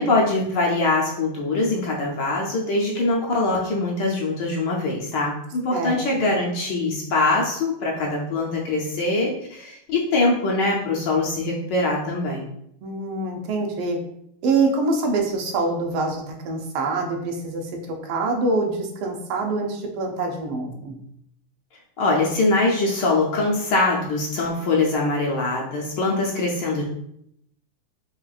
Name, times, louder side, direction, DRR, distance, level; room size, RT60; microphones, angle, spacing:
voice 1, 0.0-12.5 22.0-26.9, left 2 dB, 70° left, -2 dB, 1.1 m, -23 dB
voice 2, 12.8-14.0 14.4-21.0, right 3 dB, 80° right, 2 dB, 1.6 m, -25 dB
5.6 x 2.4 x 2.3 m, 0.73 s
omnidirectional pair, 2.3 m